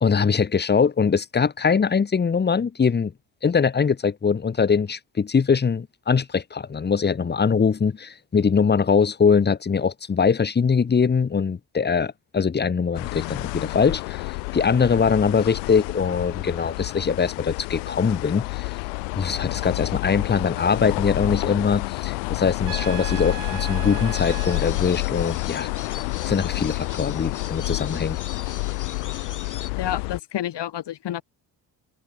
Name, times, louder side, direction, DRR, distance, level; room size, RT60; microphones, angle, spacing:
voice 1, 0.0-3.1 3.4-18.7 19.2-25.7 26.3-28.2, left 6 dB, 20° left, 0.8 m, -22 dB
sound 1, 12.9-30.2, left 40 dB or more, 85° left, 2.0 m, -29 dB
Trumpet, 22.6-24.7, right 40 dB or more, 80° right, 1.9 m, -37 dB
sound 2, 24.1-29.7, left 7 dB, 35° left, 1.8 m, -40 dB
voice 2, 29.8-31.2, left 12 dB, 55° left, 1.8 m, -29 dB
hypercardioid pair, 50°, 49 cm